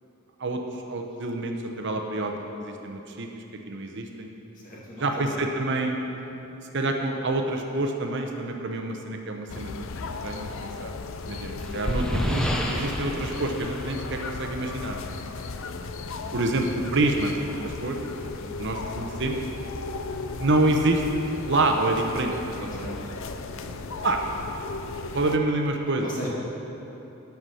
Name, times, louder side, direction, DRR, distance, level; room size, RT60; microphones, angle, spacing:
voice 1, 0.9-4.3 5.0-6.0 6.7-9.7 10.2-10.9 11.3-15.1 16.3-16.7 16.9-17.3 17.6-18.0 18.6-19.4 20.4-22.3 22.6-22.9 24.0-24.2 25.1-26.1, right 2 dB, 60° right, 3 dB, 0.9 m, -27 dB
voice 2, 4.6-5.4 6.2-6.3 15.3-16.3 18.4-18.5 22.8-22.9 23.6-23.7 26.0-26.3, equal, 40° left, -5 dB, 2.4 m, -41 dB
sound 1, 9.5-25.4, left 3 dB, 65° left, 0.5 m, -36 dB
sound 2, 11.2-14.7, equal, 5° left, 0.8 m, -30 dB
13.0 x 6.0 x 6.3 m, 3.0 s
head